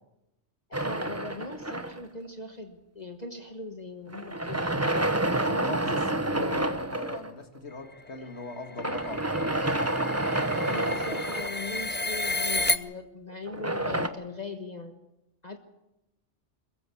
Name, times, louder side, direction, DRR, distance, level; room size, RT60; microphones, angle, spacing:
voice 1, 0.7-4.8 5.3-6.8 8.2-8.3 10.7-14.9 15.4-15.6, left 2 dB, 35° left, 5 dB, 1.5 m, -40 dB
sound 1, 0.7-2.3 4.1-7.3 8.8-12.0 13.5-14.1, right 1 dB, 15° right, 1.0 m, -29 dB
voice 2, 5.5-9.8, left 3 dB, 65° left, 7 dB, 2.2 m, -41 dB
sound 2, 8.0-12.8, left 2 dB, 15° left, 0.5 m, -32 dB
22.0 x 15.0 x 8.5 m, 0.91 s
omnidirectional pair, 1.2 m